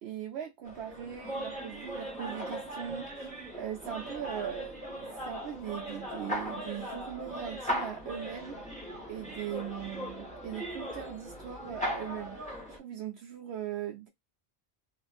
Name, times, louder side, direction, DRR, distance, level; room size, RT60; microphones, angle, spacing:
voice 1, 0.0-4.8 5.2-8.6 9.1-12.4 12.7-14.1, right 10 dB, 75° right, 0.8 m, -40 dB
sound 1, 0.6-12.8, equal, 5° left, 1.1 m, -38 dB
2.6 x 2.3 x 2.3 m
omnidirectional pair, 1.1 m